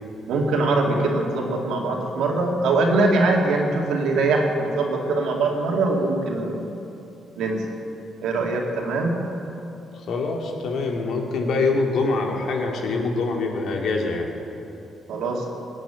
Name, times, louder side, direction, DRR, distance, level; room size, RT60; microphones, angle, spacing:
voice 1, 0.3-6.7 7.4-7.7 8.2-9.1 15.1-15.5, right 2 dB, 85° right, 1 dB, 2.4 m, -22 dB
voice 2, 9.9-14.3, left 3 dB, 70° left, 2 dB, 2.3 m, -24 dB
18.0 x 9.1 x 8.9 m, 2.9 s
cardioid pair, 100°, 0 cm